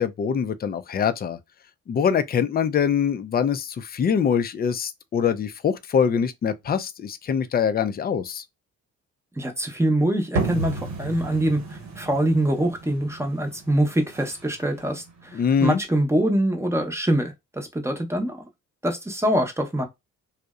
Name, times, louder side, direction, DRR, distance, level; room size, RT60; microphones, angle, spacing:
voice 1, 0.0-1.4 1.9-8.4 15.3-15.8, left 7 dB, 30° left, 0.4 m, -23 dB
voice 2, 9.4-18.4 18.8-19.8, right 1 dB, 10° right, 0.7 m, -24 dB
sound 1, 10.4-15.8, right 3 dB, 60° right, 1.0 m, -33 dB
2.6 x 2.0 x 2.3 m
supercardioid pair, 60°, 32 cm